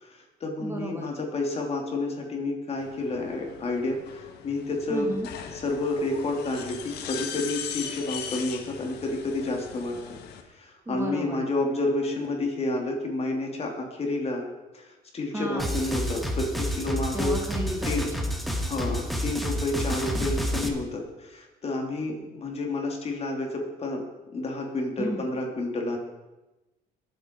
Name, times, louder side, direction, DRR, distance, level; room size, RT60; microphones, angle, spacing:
voice 1, 0.0-5.1 5.5-10.1 10.5-14.4 14.7-17.3 17.8-18.1 18.6-24.0 24.3-26.0, left 2 dB, 35° left, 1 dB, 3.0 m, -30 dB
voice 2, 0.6-1.1 4.9-5.3 10.9-11.4 15.3-15.7 17.1-18.3 25.0-25.2, right 1 dB, 15° right, 1 dB, 2.2 m, -33 dB
Electric butcher bone saw, 2.8-10.4, left 8 dB, 75° left, 1.6 m, -39 dB
sound 1, 15.6-20.7, equal, ahead, 1.7 m, -29 dB
22.0 x 8.2 x 4.6 m, 1.0 s
cardioid pair, 110°, 17 cm